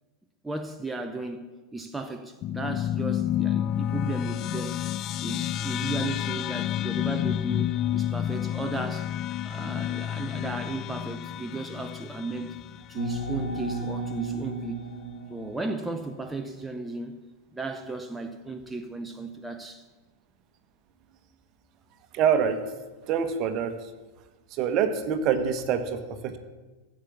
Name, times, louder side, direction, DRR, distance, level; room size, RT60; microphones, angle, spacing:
voice 1, 0.4-1.4 1.7-4.9 5.2-9.2 9.4-12.6 12.9-14.9 15.3-17.2 17.5-19.9, right 3 dB, 5° right, 0.8 m, -35 dB
sound 1, 2.4-13.2, left 11 dB, 35° left, 0.3 m, -30 dB
sound 2, 13.0-16.4, right 3 dB, 85° left, 2.4 m, -34 dB
voice 2, 22.1-22.6 23.1-23.9 24.5-26.4, right 7 dB, 40° right, 1.3 m, -25 dB
14.5 x 7.5 x 7.2 m
figure-of-eight pair, 90°, 0 cm